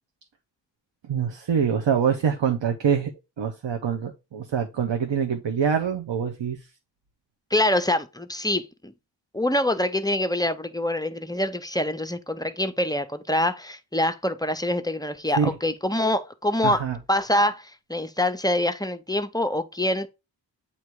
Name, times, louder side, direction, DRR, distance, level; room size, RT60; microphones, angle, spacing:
voice 1, 1.1-3.1 3.4-6.6 15.4-15.5 16.6-17.0, right 7 dB, 80° right, 0.9 m, -25 dB
voice 2, 7.5-8.9 9.3-16.8 17.1-20.1, left 1 dB, 10° left, 0.5 m, -25 dB
8.3 x 2.8 x 4.6 m
wide cardioid pair, 90°, 44 cm